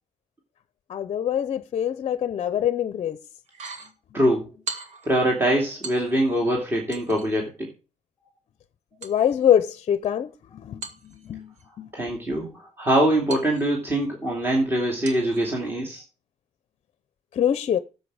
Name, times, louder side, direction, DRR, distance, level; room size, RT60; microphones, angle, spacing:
voice 1, 0.9-3.2 9.0-11.9 17.3-17.8, left 9 dB, 50° left, 0.6 m, -24 dB
sound 1, 3.4-3.9 4.7-5.1 5.8-6.4 6.9-7.5 9.0-10.1 10.8-11.6 13.3-14.0 15.0-15.5 15.9-16.0, right 4 dB, 70° right, 1.9 m, -39 dB
voice 2, 5.0-7.5 11.9-16.0, right 1 dB, 20° right, 2.6 m, -23 dB
12.5 x 7.5 x 4.9 m
cardioid pair, 120°, 12 cm